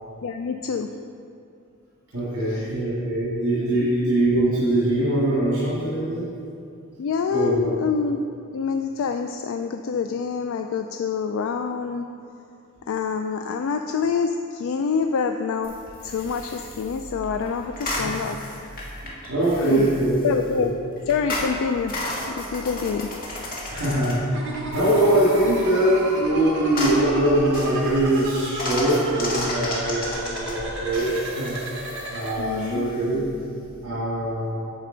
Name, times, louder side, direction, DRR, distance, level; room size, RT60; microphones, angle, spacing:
voice 1, 0.2-0.9 2.5-2.6 3.7-3.9 7.0-8.2 8.5-12.1 12.9-15.7 16.0-18.4 19.6-19.9 20.2-20.7 21.1-21.9 22.4-23.1 32.4-32.8, left 5 dB, 65° left, 6 dB, 0.3 m, -26 dB
voice 2, 2.1-6.3 7.3-7.7 19.0-20.7 23.7-24.4 24.7-31.5 32.1-33.2 33.8-34.7, right 1 dB, 70° right, -8 dB, 1.9 m, -22 dB
sound 1, 15.6-33.8, left 1 dB, 40° left, 1.5 m, -34 dB
sound 2, 24.3-32.3, right 1 dB, 55° right, 1.3 m, -32 dB
8.8 x 6.6 x 3.8 m, 2.5 s
head